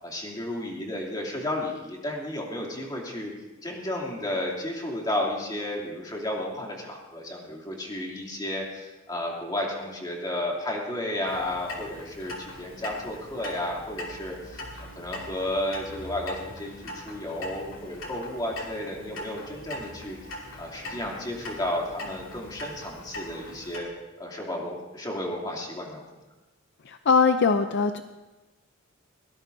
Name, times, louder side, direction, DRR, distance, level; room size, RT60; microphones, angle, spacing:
voice 1, 0.0-3.3 3.6-14.6 14.9-20.2 20.6-23.9 24.2-26.0, left 1 dB, 20° left, -2 dB, 3.0 m, -32 dB
Clock, 11.2-23.8, left 1 dB, 85° left, 2.9 m, -41 dB
voice 2, 26.9-28.0, left 5 dB, 60° left, 8 dB, 0.6 m, -21 dB
22.5 x 18.0 x 2.7 m, 1.1 s
head